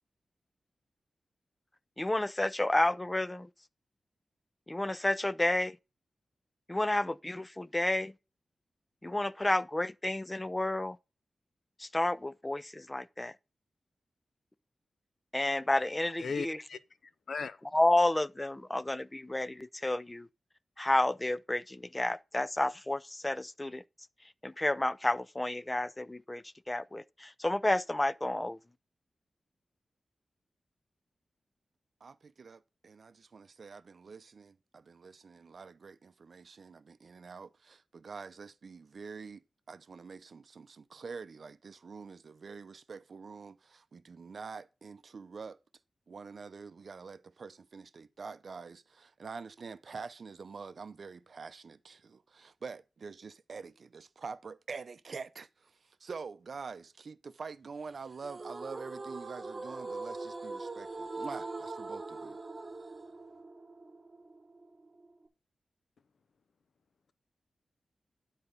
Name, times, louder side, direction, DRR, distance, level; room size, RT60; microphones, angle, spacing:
voice 1, 2.0-3.5 4.7-5.8 6.7-8.1 9.0-11.0 11.8-13.3 15.3-16.6 17.7-20.3 20.8-23.8 24.4-28.6, left 1 dB, 15° left, 0.4 m, -31 dB
voice 2, 16.2-16.8 17.3-17.6, left 5 dB, 75° left, 0.6 m, -36 dB
voice 3, 32.0-45.6 46.1-62.4, right 5 dB, 55° right, 0.6 m, -46 dB
sound 1, 58.2-65.3, right 3 dB, 30° right, 1.1 m, -42 dB
9.9 x 4.2 x 5.3 m
wide cardioid pair, 140°, 0 cm